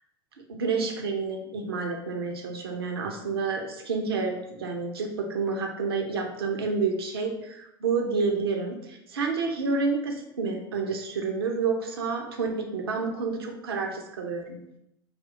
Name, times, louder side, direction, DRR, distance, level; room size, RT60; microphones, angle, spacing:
voice 1, 0.5-14.6, right 4 dB, 80° right, 2 dB, 0.8 m, -29 dB
5.2 x 2.8 x 3.7 m, 0.82 s
hypercardioid pair, 80°, 12 cm